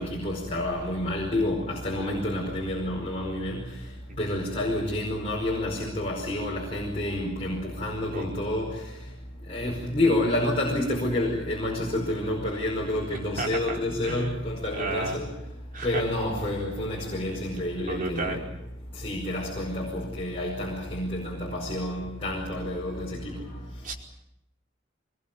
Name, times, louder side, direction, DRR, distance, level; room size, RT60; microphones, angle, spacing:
voice 1, 0.0-3.6 4.2-8.8 9.5-15.3 15.8-18.4 19.0-23.4, left 1 dB, 30° left, 5.1 m, -29 dB
voice 2, 13.4-13.8 14.0-14.4 14.7-15.2 15.7-16.0 17.9-18.4 23.8-23.9, right 2 dB, 45° right, 4.9 m, -32 dB
24.5 x 20.5 x 9.1 m
head